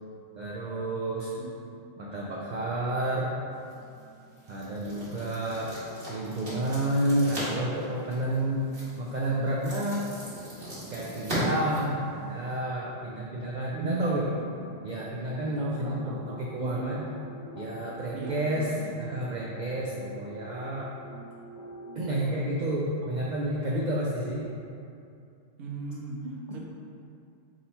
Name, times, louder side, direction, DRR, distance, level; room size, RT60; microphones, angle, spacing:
voice 1, 0.4-1.3 2.0-3.3 4.5-5.7 6.1-8.7 9.0-10.1 10.9-14.3 14.8-17.1 17.6-20.9 22.0-24.5, right 1 dB, 85° right, -4 dB, 0.4 m, -30 dB
voice 2, 1.4-1.8 13.7-14.8 15.6-17.1 18.1-18.9 23.2-23.3 25.6-26.6, right 2 dB, 70° right, -2 dB, 0.9 m, -37 dB
sound 1, 3.5-12.6, right 1 dB, 45° right, 1.4 m, -39 dB
sound 2, 15.3-22.2, right 1 dB, 55° left, 0.6 m, -46 dB
3.8 x 2.8 x 4.2 m, 2.5 s
omnidirectional pair, 1.3 m